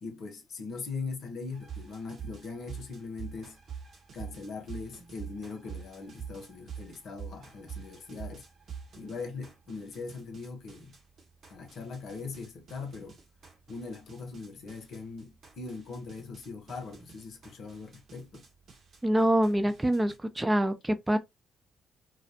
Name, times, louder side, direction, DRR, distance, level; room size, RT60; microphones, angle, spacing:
voice 1, 0.0-3.6 4.1-8.5 9.0-10.9 11.5-13.2 13.7-18.4, left 4 dB, 60° left, 0.6 m, -41 dB
sound 1, 1.5-20.2, right 7 dB, 55° right, 0.7 m, -46 dB
voice 2, 19.0-21.2, right 1 dB, 15° right, 0.4 m, -25 dB
2.3 x 2.0 x 2.6 m
figure-of-eight pair, 40°, 0 cm